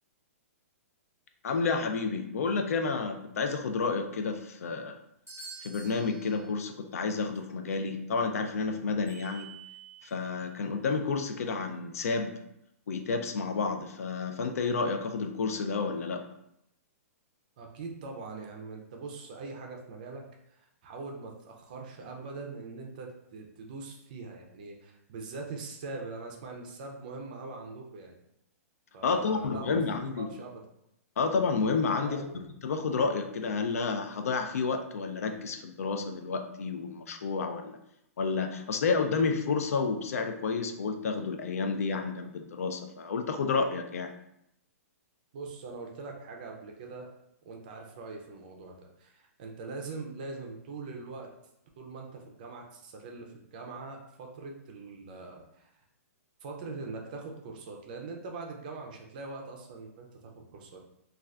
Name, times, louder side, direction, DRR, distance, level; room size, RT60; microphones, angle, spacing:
voice 1, 1.4-5.0 5.6-9.5 10.0-12.3 12.9-16.2 29.0-30.3 31.2-37.8 38.2-44.1, left 4 dB, 70° left, 6 dB, 0.4 m, -30 dB
sound 1, 5.3-6.7 7.3-7.4 9.1-10.2, right 5 dB, 5° left, 1.0 m, -48 dB
voice 2, 17.6-20.2 20.5-28.1 28.9-29.8 30.2-30.6 32.0-32.3 45.3-47.1 47.4-51.3 51.8-55.7 56.4-60.8, right 3 dB, 30° right, 1 dB, 0.4 m, -42 dB
2.4 x 2.3 x 3.3 m, 0.78 s
hypercardioid pair, 170°, 8 cm